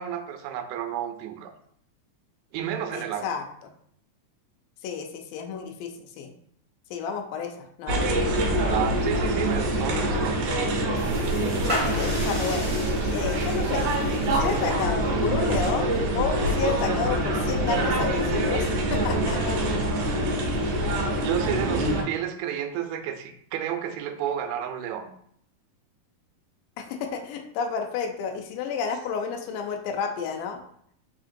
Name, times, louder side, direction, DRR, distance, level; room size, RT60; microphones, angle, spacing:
voice 1, 0.0-1.5 2.5-3.3 8.6-10.4 11.3-11.4 21.2-25.1, right 10 dB, 85° right, 6 dB, 2.4 m, -31 dB
voice 2, 2.9-3.4 4.8-6.3 6.9-8.0 11.5-12.7 13.1-13.9 14.3-19.6 26.8-30.6, left 5 dB, 80° left, 4 dB, 2.3 m, -31 dB
sound 1, 7.9-22.0, right 1 dB, 70° right, 2.0 m, -25 dB
sound 2, 11.0-17.6, equal, 30° right, 0.8 m, -38 dB
5.0 x 3.7 x 2.6 m, 0.66 s
omnidirectional pair, 4.1 m